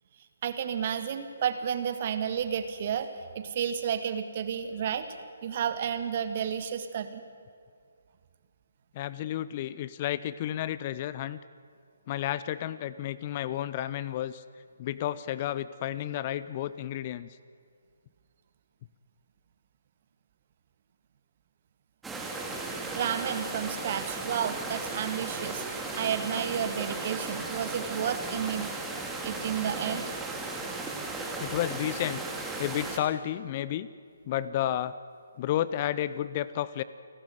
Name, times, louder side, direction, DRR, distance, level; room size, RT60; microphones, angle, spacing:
voice 1, 0.4-3.1 3.4-5.2 5.4-7.2 22.9-28.7 29.2-30.1, right 8 dB, 40° right, 9 dB, 1.8 m, -31 dB
voice 2, 8.9-11.4 12.1-14.4 14.8-17.3 29.8-30.0 31.4-32.2 32.6-33.9 34.2-34.9 35.4-36.8, left 12 dB, 30° left, 16 dB, 0.6 m, -31 dB
sound 1, 22.0-33.0, right 3 dB, 5° right, 2.2 m, -36 dB
30.0 x 12.5 x 9.3 m, 2.2 s
figure-of-eight pair, 140°, 0 cm